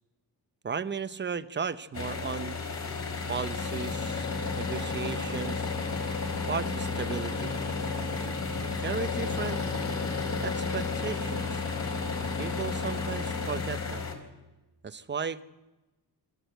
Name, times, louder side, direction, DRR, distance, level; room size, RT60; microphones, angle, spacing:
voice 1, 0.6-2.6 3.3-4.3 4.6-5.7 6.5-7.5 8.6-9.6 10.4-11.6 12.2-14.0 14.8-15.4, right 6 dB, 25° right, 13 dB, 0.8 m, -35 dB
sound 1, 1.9-14.1, left 4 dB, 40° left, 4.0 m, -32 dB
24.5 x 13.5 x 9.0 m, 1.1 s
cardioid pair, 115°, 41 cm